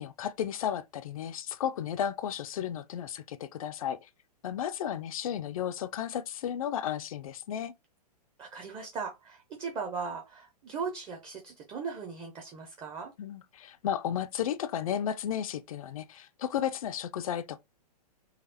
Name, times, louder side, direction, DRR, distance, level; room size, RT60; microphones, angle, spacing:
voice 1, 0.0-4.0 4.4-7.7 13.2-17.6, left 9 dB, 60° left, 0.4 m, -33 dB
voice 2, 8.4-13.1, right 5 dB, 20° right, 0.7 m, -38 dB
4.0 x 2.4 x 2.8 m
figure-of-eight pair, 110°, 21 cm